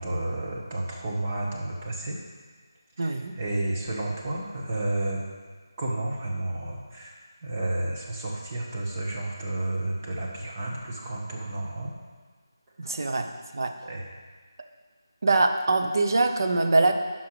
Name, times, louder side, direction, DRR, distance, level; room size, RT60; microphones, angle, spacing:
voice 1, 0.0-2.2 3.0-5.2 5.8-7.2 7.4-11.9 13.0-13.1 13.8-14.0, right 2 dB, 30° right, -3 dB, 1.6 m, -31 dB
voice 2, 3.0-3.3 12.8-13.7 15.2-16.9, right 2 dB, 55° right, 5 dB, 0.9 m, -23 dB
11.0 x 5.7 x 4.9 m, 1.5 s
figure-of-eight pair, 170°, 2 cm